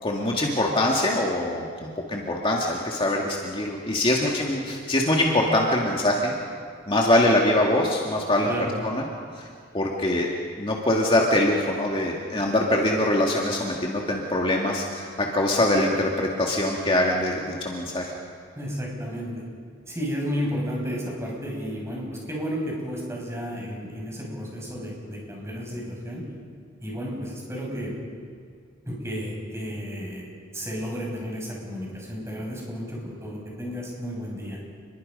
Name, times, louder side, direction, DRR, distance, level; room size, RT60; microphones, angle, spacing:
voice 1, 0.0-6.4 6.9-8.5 8.8-9.0 9.4-9.5 9.7-10.3 10.6-18.1, left 1 dB, 30° left, -1 dB, 2.0 m, -23 dB
voice 2, 8.5-8.8 18.5-19.3 19.9-26.2 26.8-28.0 28.8-30.3 30.5-34.6, equal, 15° right, -2 dB, 6.6 m, -32 dB
29.5 x 22.0 x 5.4 m, 2.1 s
head